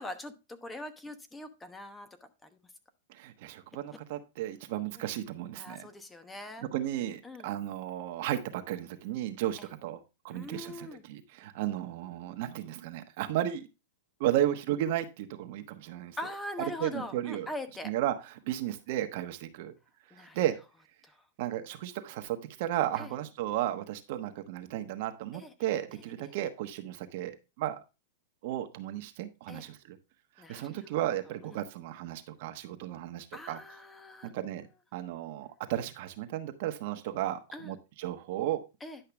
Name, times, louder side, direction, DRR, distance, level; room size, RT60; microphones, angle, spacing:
voice 1, 0.0-2.1 2.4-2.5 3.9-4.0 5.0-5.1 5.5-6.6 7.2-7.5 9.6-9.7 10.3-11.0 16.2-17.9 20.1-20.4 23.0-23.1 25.3-25.5 29.5-29.7 30.4-30.8 31.5-31.6 33.3-34.4 37.5-37.7 38.8-39.0, left 1 dB, 10° left, 1.0 m, -42 dB
voice 2, 3.1-5.9 6.6-10.0 10.2-13.7 14.2-16.2 16.8-17.5 17.8-19.7 20.2-20.5 21.4-27.8 28.4-30.0 30.5-33.6 34.2-34.7 34.9-38.6, right 12 dB, 60° right, 1.2 m, -34 dB
10.5 x 5.6 x 3.4 m
hypercardioid pair, 130°, 0 cm